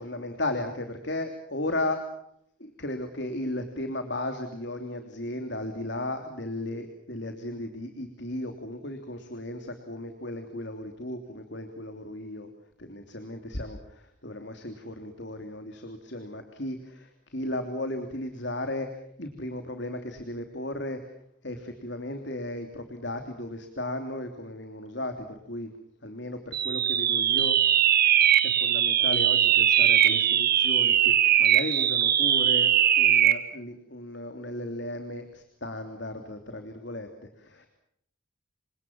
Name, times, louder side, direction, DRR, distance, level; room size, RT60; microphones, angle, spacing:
voice 1, 0.0-2.0 2.6-12.5 12.8-21.1 21.4-25.7 26.0-27.6 28.4-37.1 37.4-37.7, left 1 dB, 55° left, 6 dB, 3.2 m, -35 dB
sound 1, 26.5-33.5, right 10 dB, 45° right, 1.9 m, -21 dB
29.0 x 26.0 x 6.1 m, 0.72 s
head